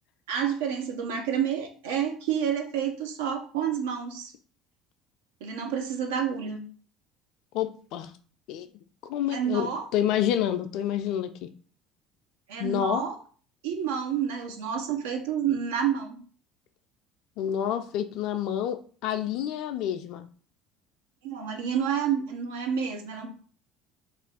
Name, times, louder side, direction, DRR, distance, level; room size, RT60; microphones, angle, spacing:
voice 1, 0.3-4.3 5.4-6.6 9.3-9.8 12.5-13.1 13.6-16.2 21.2-23.3, right 8 dB, 70° right, 4 dB, 0.5 m, -29 dB
voice 2, 7.5-8.1 8.5-8.7 9.0-11.5 12.6-13.0 17.4-20.3, left 10 dB, 60° left, 10 dB, 0.3 m, -28 dB
2.4 x 2.3 x 3.4 m, 0.42 s
figure-of-eight pair, 60°, 0 cm